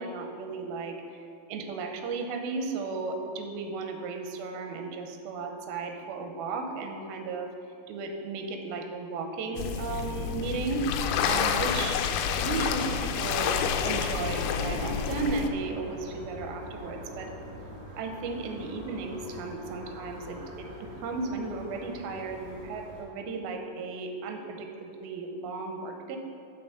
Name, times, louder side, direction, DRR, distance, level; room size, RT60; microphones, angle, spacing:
voice 1, 0.0-7.5 7.9-10.8 11.2-12.0 12.3-17.3 18.0-26.2, right 4 dB, 80° right, 4 dB, 2.6 m, -35 dB
sound 1, 9.6-15.5, left 7 dB, 90° left, 2.5 m, -29 dB
sound 2, 13.1-23.0, left 1 dB, 40° right, 3.1 m, -42 dB
6.9 x 5.8 x 7.0 m, 2.4 s
omnidirectional pair, 4.3 m